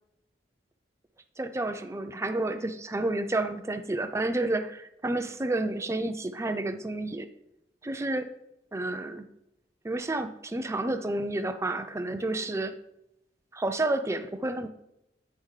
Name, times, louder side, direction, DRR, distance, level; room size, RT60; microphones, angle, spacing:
voice 1, 1.4-7.3 7.8-8.3 8.7-9.3 9.8-12.7 13.5-14.7, right 2 dB, 15° right, 8 dB, 0.5 m, -30 dB
8.8 x 5.4 x 3.2 m, 0.82 s
head